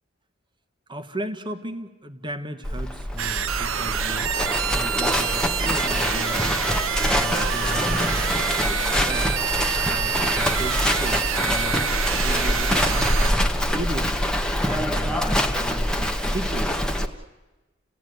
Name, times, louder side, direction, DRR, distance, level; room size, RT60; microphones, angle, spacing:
voice 1, 0.9-6.6 7.0-9.3 9.8-14.2 14.6-16.7, right 1 dB, 25° right, 7 dB, 1.5 m, -35 dB
Livestock farm animals working animals, 2.6-17.1, left 1 dB, 5° left, 1.3 m, -24 dB
sound 1, 3.2-13.3, right 8 dB, 80° right, 0.9 m, -27 dB
29.5 x 17.0 x 9.4 m, 1.1 s
head